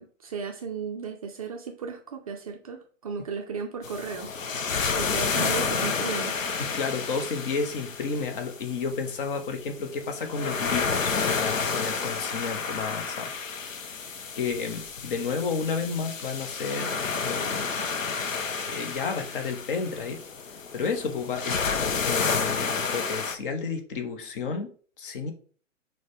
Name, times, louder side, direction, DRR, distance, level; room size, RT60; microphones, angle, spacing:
voice 1, 0.0-4.3 5.0-6.4, right 6 dB, 30° right, 2 dB, 0.4 m, -35 dB
sound 1, 3.8-23.4, left 5 dB, 85° left, 0.6 m, -30 dB
voice 2, 6.6-13.9 14.3-17.7 18.7-20.2 20.7-21.6 22.1-25.3, left 5 dB, 45° left, 5 dB, 0.8 m, -32 dB
6.3 x 2.1 x 3.3 m, 0.42 s
figure-of-eight pair, 115°, 38 cm